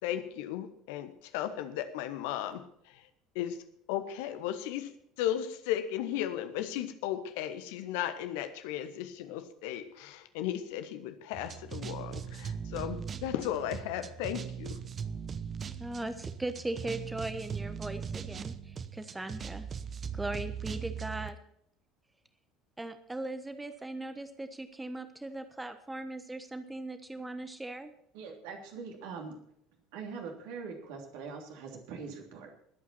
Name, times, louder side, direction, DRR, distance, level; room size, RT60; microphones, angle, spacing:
voice 1, 0.0-3.1 3.3-3.6 3.9-4.9 5.2-14.8, left 11 dB, 65° left, 10 dB, 1.2 m, -35 dB
sound 1, 11.3-21.3, right 7 dB, 35° right, 0.9 m, -39 dB
voice 2, 15.8-19.7 20.1-21.4 22.8-27.9, right 2 dB, 10° right, 10 dB, 1.2 m, -39 dB
voice 3, 28.1-29.4 29.9-32.5, right 5 dB, 60° right, 1 dB, 3.1 m, -42 dB
21.0 x 8.7 x 4.3 m, 0.70 s
figure-of-eight pair, 65°, 0 cm